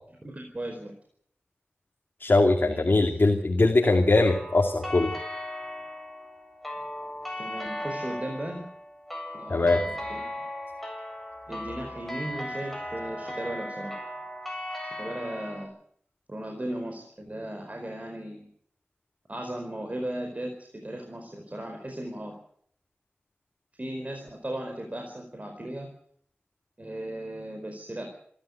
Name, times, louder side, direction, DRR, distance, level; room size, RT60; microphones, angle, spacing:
voice 1, 0.2-0.9 2.6-3.1 7.4-8.7 9.3-10.3 11.5-13.9 15.0-15.7 16.3-18.5 19.3-22.4 23.8-25.9 26.8-28.1, right 1 dB, 35° right, 3 dB, 4.7 m, -36 dB
voice 2, 2.2-5.1 9.5-9.8, left 2 dB, 60° left, 2 dB, 2.6 m, -21 dB
sound 1, 4.3-15.6, left 1 dB, 5° left, 7.7 m, -37 dB
27.0 x 13.0 x 8.3 m, 0.65 s
wide cardioid pair, 65°, 4 cm